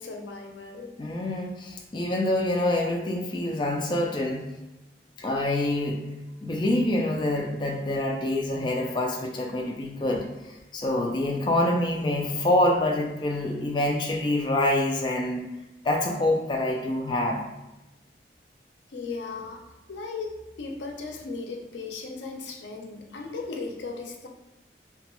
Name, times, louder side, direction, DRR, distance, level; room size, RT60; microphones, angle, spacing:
voice 1, 0.0-0.9 18.9-24.3, left 4 dB, 90° left, 3 dB, 0.5 m, -37 dB
voice 2, 1.0-4.4 5.2-6.0 6.4-15.5 15.8-17.4, left 1 dB, 25° left, 0 dB, 0.3 m, -26 dB
2.9 x 2.3 x 2.9 m, 0.99 s
head